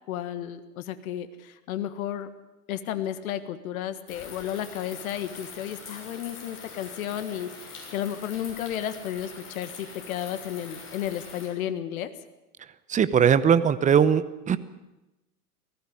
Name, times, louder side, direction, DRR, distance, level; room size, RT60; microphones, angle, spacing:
voice 1, 0.1-2.3 2.7-12.1, left 10 dB, 65° left, 11 dB, 1.7 m, -33 dB
sound 1, 4.1-11.5, left 4 dB, 25° left, 6.9 m, -44 dB
voice 2, 12.9-14.6, right 8 dB, 15° right, 15 dB, 0.8 m, -20 dB
19.0 x 15.5 x 9.6 m, 0.99 s
hypercardioid pair, 120°, 45 cm